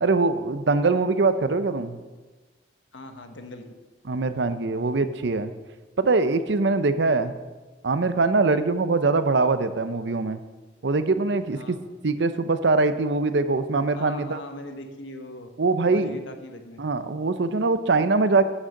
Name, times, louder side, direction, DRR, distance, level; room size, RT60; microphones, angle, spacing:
voice 1, 0.0-2.0 4.1-5.5 6.0-7.3 7.8-10.4 10.8-11.8 12.0-14.4 15.6-16.2 16.8-18.4, right 3 dB, 70° right, 11 dB, 0.6 m, -22 dB
voice 2, 2.9-3.7 11.5-11.8 14.0-15.5 15.9-16.8, left 1 dB, 80° left, 6 dB, 1.2 m, -40 dB
9.5 x 6.5 x 6.5 m, 1.2 s
head